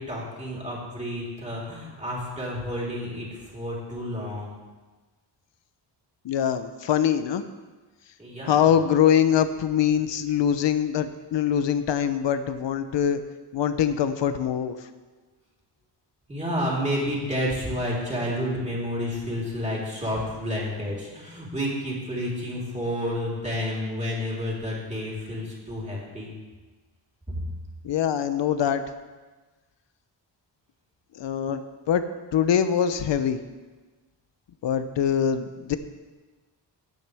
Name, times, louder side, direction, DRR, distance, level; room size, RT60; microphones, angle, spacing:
voice 1, 0.0-4.6 8.2-8.7 16.3-26.3, equal, 15° right, -5 dB, 3.8 m, -30 dB
voice 2, 6.2-7.4 8.5-13.2 13.5-14.8 27.8-28.8 31.2-32.0 32.3-33.4 34.6-35.8, left 9 dB, 75° left, 10 dB, 0.8 m, -23 dB
17.0 x 9.1 x 3.5 m, 1.3 s
wide cardioid pair, 105°, 44 cm